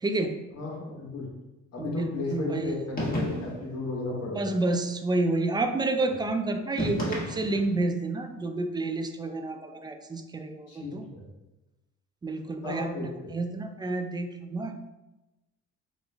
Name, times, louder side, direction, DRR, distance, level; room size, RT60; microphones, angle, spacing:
voice 1, 0.0-0.3 1.8-2.7 4.3-11.1 12.2-14.7, right 2 dB, 15° right, 6 dB, 0.3 m, -29 dB
voice 2, 0.5-1.3 1.7-4.4 6.0-6.1 10.7-11.2 12.6-13.0, left 3 dB, 55° left, -2 dB, 1.3 m, -34 dB
sound 1, 3.0-3.7 6.8-7.8, left 1 dB, 30° left, 1.3 m, -31 dB
3.6 x 2.5 x 3.3 m, 1.0 s
cardioid pair, 90°, 30 cm